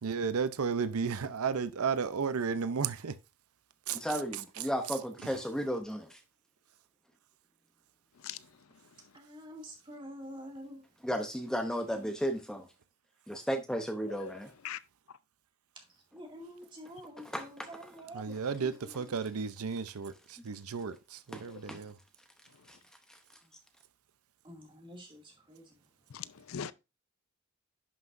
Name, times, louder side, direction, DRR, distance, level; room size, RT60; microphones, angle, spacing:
voice 1, 0.0-3.1 3.9-4.2 5.2-5.3 18.1-21.9, right 5 dB, 90° right, 0.6 m, -33 dB
voice 2, 3.9-6.1 11.0-12.6 13.3-14.5 17.3-17.7 21.3-21.4 21.7-21.8, equal, 5° left, 0.7 m, -34 dB
voice 3, 9.1-10.8 16.1-19.2 24.4-25.7, equal, 25° right, 2.3 m, -48 dB
voice 4, 14.1-14.8 21.5-21.7 26.1-26.7, left 8 dB, 70° left, 0.5 m, -41 dB
11.0 x 5.8 x 2.6 m
head